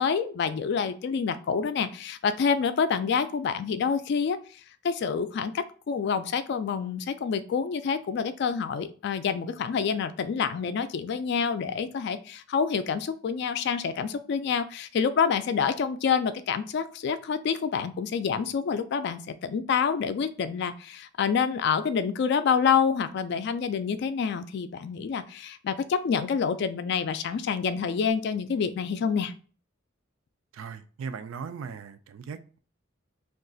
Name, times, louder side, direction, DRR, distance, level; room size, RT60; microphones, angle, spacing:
voice 1, 0.0-4.4 4.8-29.3, left 6 dB, 60° left, 0.3 m, -27 dB
voice 2, 30.5-32.6, right 6 dB, 85° right, 0.4 m, -38 dB
2.4 x 2.3 x 3.8 m
head